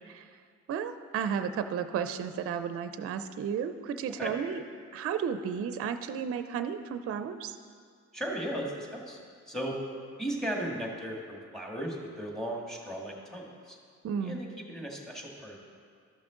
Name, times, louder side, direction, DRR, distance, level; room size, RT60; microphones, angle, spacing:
voice 1, 0.7-4.6 4.9-7.6 14.0-14.4, right 7 dB, 50° right, 9 dB, 0.5 m, -33 dB
voice 2, 8.1-9.2 9.5-9.8 10.2-13.8 14.2-15.6, right 1 dB, ahead, -1 dB, 1.7 m, -36 dB
13.0 x 6.1 x 3.7 m, 2.1 s
cardioid pair, 90°, 30 cm